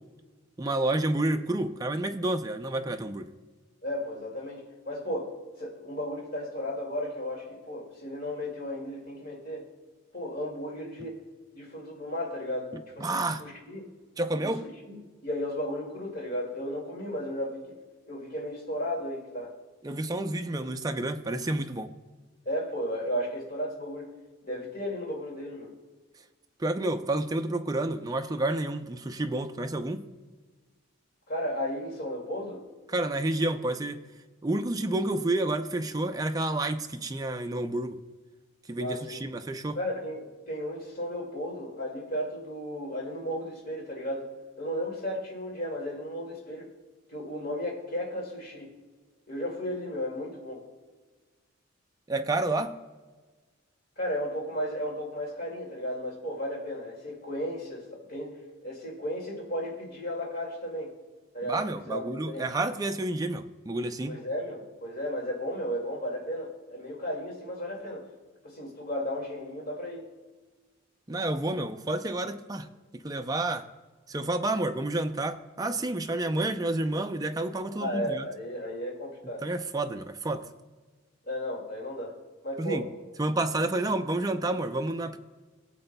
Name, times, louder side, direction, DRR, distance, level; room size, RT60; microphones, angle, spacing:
voice 1, 0.6-3.3 13.0-13.4 14.2-14.7 19.8-21.9 26.6-30.1 32.9-34.0 34.4-38.0 38.7-39.8 52.1-52.7 61.4-64.2 71.1-73.7 74.1-78.3 79.4-80.4 82.6-82.8 83.2-85.2, right 2 dB, 20° right, 7 dB, 0.4 m, -30 dB
voice 2, 3.8-5.3 5.6-9.7 10.1-11.2 11.5-13.9 14.4-17.6 18.1-19.5 22.5-24.1 24.4-25.7 31.3-32.6 38.8-39.2 39.8-44.3 44.6-46.7 47.1-48.7 49.3-50.6 54.0-60.9 61.3-62.5 64.1-68.0 68.4-70.0 77.8-79.5 81.3-82.2 82.4-82.9, equal, 45° left, -1 dB, 2.1 m, -34 dB
17.5 x 7.8 x 2.2 m, 1.3 s
head